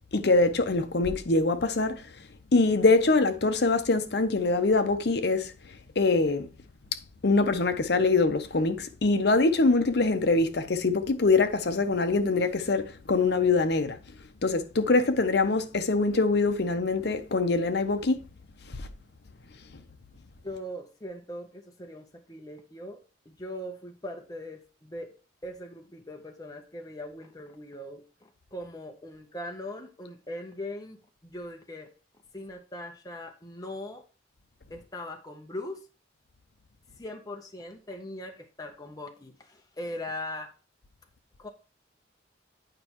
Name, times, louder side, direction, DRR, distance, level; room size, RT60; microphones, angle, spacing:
voice 1, 0.1-2.1 2.5-5.5 6.0-6.5 7.2-14.0 14.4-18.2 18.8-18.9, left 3 dB, 60° left, 0.7 m, -24 dB
voice 2, 20.4-25.1 25.4-31.9 32.3-34.0 34.7-35.8 37.0-40.5 41.4-41.5, left 1 dB, 20° left, 0.7 m, -40 dB
9.1 x 5.3 x 3.0 m
head